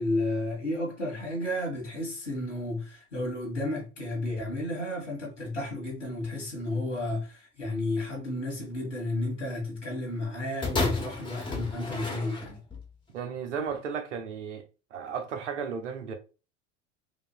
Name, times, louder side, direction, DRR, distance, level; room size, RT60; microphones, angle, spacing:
voice 1, 0.0-12.6, left 1 dB, 90° left, 1.9 m, -32 dB
sound 1, 10.6-12.9 13.7-13.8, left 3 dB, 15° left, 1.2 m, -32 dB
voice 2, 13.1-14.6 14.9-16.1, right 6 dB, 80° right, 0.9 m, -34 dB
5.0 x 2.7 x 2.3 m
figure-of-eight pair, 75°, 36 cm